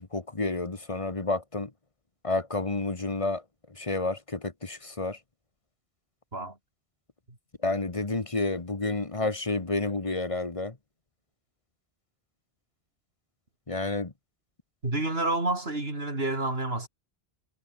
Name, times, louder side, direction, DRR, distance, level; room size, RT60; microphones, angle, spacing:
voice 1, 0.0-1.7 2.2-3.4 3.8-5.2 7.6-10.7 13.7-14.1, left 2 dB, 30° left, 1.5 m, -30 dB
voice 2, 14.8-16.9, right 2 dB, 65° right, 4.8 m, -29 dB
omnidirectional pair, 1.1 m